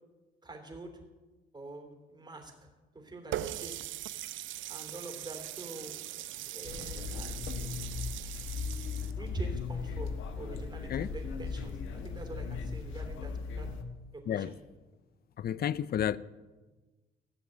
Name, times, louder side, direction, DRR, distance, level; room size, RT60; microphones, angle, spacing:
voice 1, 0.4-1.0 1.5-2.7 2.9-3.8 4.7-7.5 9.0-13.7 14.1-14.6, right 2 dB, 20° right, 3.1 m, -45 dB
Water tap faucet, 3.3-9.1, right 13 dB, 75° right, 0.5 m, -40 dB
sound 1, 6.6-13.8, left 5 dB, 90° left, 1.2 m, -37 dB
voice 2, 15.4-16.2, left 10 dB, 50° left, 0.5 m, -31 dB
15.5 x 6.1 x 9.0 m
cardioid pair, 90°, 20 cm